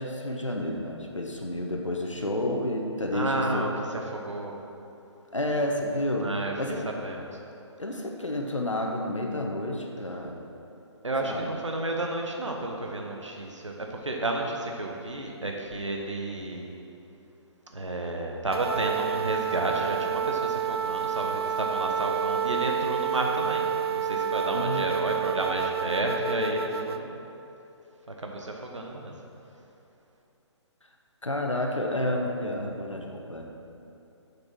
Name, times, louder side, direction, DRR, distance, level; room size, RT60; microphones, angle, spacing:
voice 1, 0.0-3.6 5.3-6.3 6.6-6.9 7.8-10.4 11.2-11.5 24.5-24.9 31.2-33.5, left 1 dB, 85° left, 1 dB, 1.1 m, -30 dB
voice 2, 3.1-3.7 4.1-4.5 6.2-6.5 6.9-7.3 11.0-16.8 17.7-27.1 28.2-29.1, right 2 dB, 80° right, 1 dB, 1.1 m, -31 dB
sound 1, 18.5-27.0, right 7 dB, 55° right, 0.4 m, -29 dB
7.2 x 6.7 x 6.0 m, 2.8 s
figure-of-eight pair, 135°, 15 cm